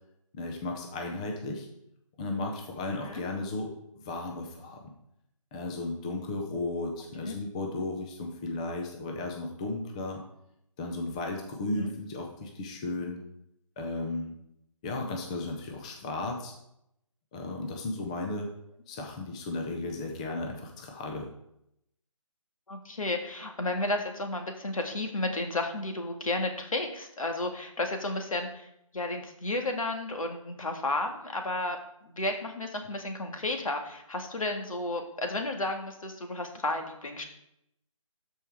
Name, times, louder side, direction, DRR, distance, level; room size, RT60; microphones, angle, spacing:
voice 1, 0.3-1.7 2.2-3.7 4.0-4.8 5.5-10.2 10.8-13.2 13.8-14.3 14.8-16.5 17.3-18.5 18.9-21.3, left 2 dB, 10° left, 2 dB, 0.6 m, -35 dB
voice 2, 22.7-31.8 32.0-37.2, left 2 dB, 75° left, 4 dB, 1.9 m, -32 dB
13.0 x 4.7 x 3.5 m, 0.79 s
figure-of-eight pair, 160°, 18 cm